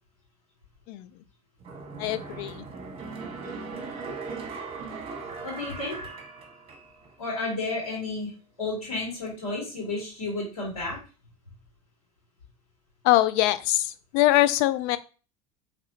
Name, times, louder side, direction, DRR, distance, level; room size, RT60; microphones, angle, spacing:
sound 1, 1.6-7.2 7.5-7.6, right 4 dB, 30° right, 1.3 m, -38 dB
voice 1, 2.0-2.6 13.0-15.0, left 15 dB, 60° left, 14 dB, 0.5 m, -23 dB
voice 2, 5.4-6.0 7.2-8.3 8.6-11.0, left 2 dB, 85° left, -3 dB, 2.2 m, -32 dB
4.8 x 3.4 x 2.8 m, 0.34 s
hypercardioid pair, 80°, 19 cm